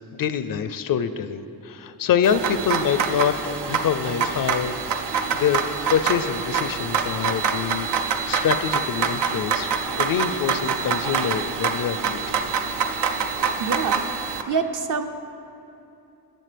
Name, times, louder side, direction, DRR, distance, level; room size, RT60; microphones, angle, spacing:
voice 1, 0.1-4.8 5.3-5.6 5.9-9.7 10.0-12.4, left 7 dB, 55° left, 12 dB, 0.5 m, -25 dB
sound 1, 2.2-14.4, right 6 dB, 85° right, 0.6 m, -26 dB
voice 2, 13.6-15.0, right 5 dB, 50° right, 7 dB, 0.6 m, -27 dB
12.0 x 7.3 x 3.4 m, 2.8 s
cardioid pair, 60°, 41 cm